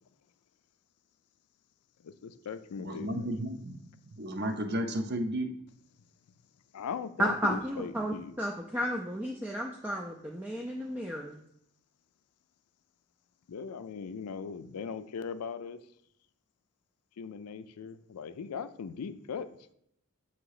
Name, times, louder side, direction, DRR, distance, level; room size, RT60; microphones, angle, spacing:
voice 1, 2.0-3.3 6.7-8.3 13.5-15.8 17.2-19.5, left 6 dB, 90° left, 12 dB, 0.4 m, -39 dB
voice 2, 2.8-3.8 4.0-5.5, right 1 dB, 45° right, 5 dB, 0.6 m, -33 dB
voice 3, 7.2-11.4, equal, 10° right, 0 dB, 0.3 m, -33 dB
7.2 x 2.9 x 4.8 m, 0.73 s
head